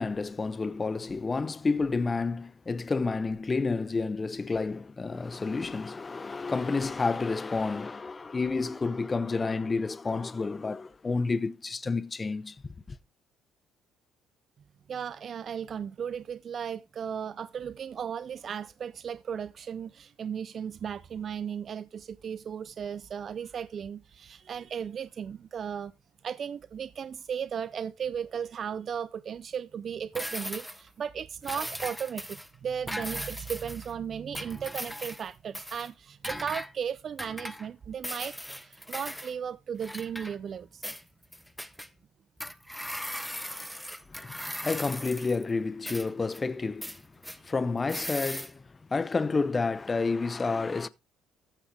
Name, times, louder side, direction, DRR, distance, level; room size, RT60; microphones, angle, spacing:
voice 1, 0.0-13.0 44.1-47.0 47.4-50.9, left 4 dB, 25° left, 0.6 m, -30 dB
voice 2, 14.9-25.9 26.2-40.9, right 7 dB, 50° right, 0.4 m, -36 dB
sound 1, 30.1-30.9 31.4-32.5 32.9-33.9 34.3-35.3 35.5-35.9 36.2-36.7 37.2-37.7 38.0-39.3 39.8-40.6 40.8-41.9 42.4-45.4 45.9-46.4 46.8-47.4 47.9-48.5, equal, ahead, 0.8 m, -38 dB
14.0 x 6.0 x 3.3 m
supercardioid pair, 85°, 0 cm